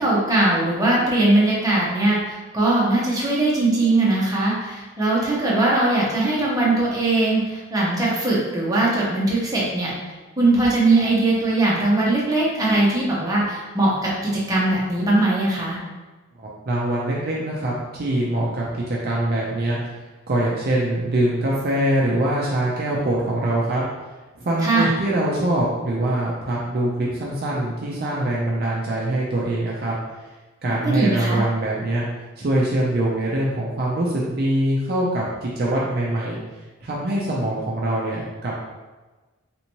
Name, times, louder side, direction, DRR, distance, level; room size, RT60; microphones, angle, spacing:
voice 1, 0.0-14.1 14.5-15.8 24.6-24.9 30.8-31.4, right 2 dB, 15° right, -6 dB, 0.8 m, -20 dB
voice 2, 16.4-19.8 20.3-23.8 24.4-30.0 30.6-32.1 32.4-36.4 36.8-38.5, right 1 dB, 45° right, -4 dB, 0.5 m, -23 dB
3.4 x 2.8 x 2.9 m, 1.2 s
head